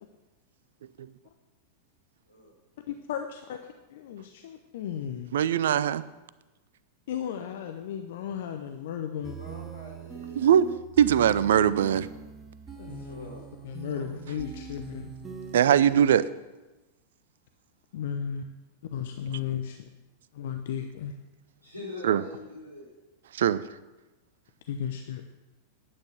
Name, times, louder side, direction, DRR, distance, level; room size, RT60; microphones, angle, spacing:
voice 1, 2.9-3.6 3.9-5.3 7.1-9.4 12.8-13.3 13.6-15.1 17.9-18.5 18.9-19.8 20.3-21.1 24.7-25.3, left 8 dB, 55° left, 6 dB, 0.7 m, -35 dB
voice 2, 5.3-6.0 10.4-10.7 11.0-12.1 15.5-16.3 22.0-22.2 23.3-23.6, right 9 dB, 60° right, 17 dB, 0.5 m, -21 dB
sound 1, 9.2-16.1, right 5 dB, 15° right, 1.4 m, -42 dB
voice 3, 9.4-10.7 11.0-11.1 12.7-13.4 13.9-14.1 14.4-14.5 21.6-22.9, left 2 dB, 85° left, -4 dB, 4.0 m, -44 dB
11.0 x 9.1 x 6.3 m, 1.1 s
figure-of-eight pair, 90°, 0 cm